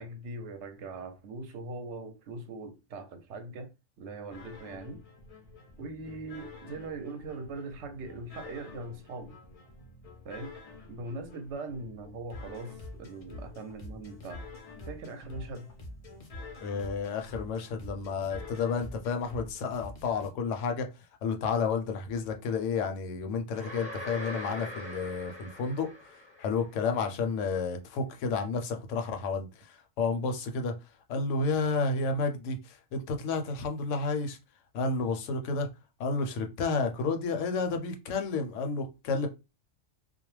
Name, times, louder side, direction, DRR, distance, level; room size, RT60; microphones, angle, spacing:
voice 1, 0.0-5.0 5.8-9.4 10.2-10.6 10.9-14.5 14.9-15.7, right 2 dB, 70° right, 0.8 m, -41 dB
sound 1, 4.3-20.3, left 2 dB, 50° left, 0.4 m, -47 dB
voice 2, 16.6-20.9 21.2-25.9 26.4-30.7 31.1-34.4 34.7-35.7 36.0-39.3, left 4 dB, 75° left, 0.9 m, -31 dB
sound 2, 23.5-26.6, left 1 dB, 10° right, 0.6 m, -41 dB
2.3 x 2.0 x 3.0 m
omnidirectional pair, 1.3 m